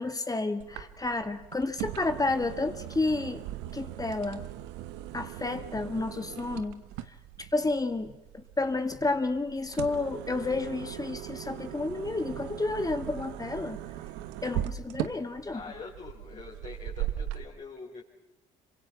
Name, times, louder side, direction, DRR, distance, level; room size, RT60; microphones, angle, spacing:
voice 1, 0.0-3.4 3.7-4.4 5.1-6.8 7.4-13.8 14.4-15.6, left 3 dB, 20° left, 8 dB, 2.2 m, -31 dB
sound 1, 0.6-17.4, right 13 dB, 80° right, 1.2 m, -39 dB
voice 2, 15.5-18.0, left 4 dB, 45° left, -6 dB, 6.1 m, -44 dB
27.0 x 24.5 x 5.9 m, 0.95 s
hypercardioid pair, 60°, 17 cm